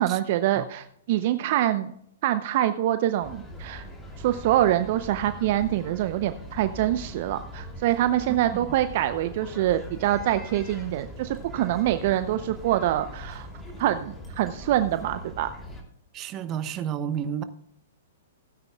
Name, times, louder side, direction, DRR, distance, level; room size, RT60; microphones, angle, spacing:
voice 1, 0.0-1.9 2.2-3.8 4.2-13.5 13.8-15.5, right 13 dB, 50° right, 0.6 m, -25 dB
sound 1, 3.2-15.8, equal, 15° left, 2.8 m, -41 dB
voice 2, 16.1-17.4, right 8 dB, 30° right, 1.0 m, -31 dB
16.5 x 9.6 x 2.3 m
hypercardioid pair, 120°, 0 cm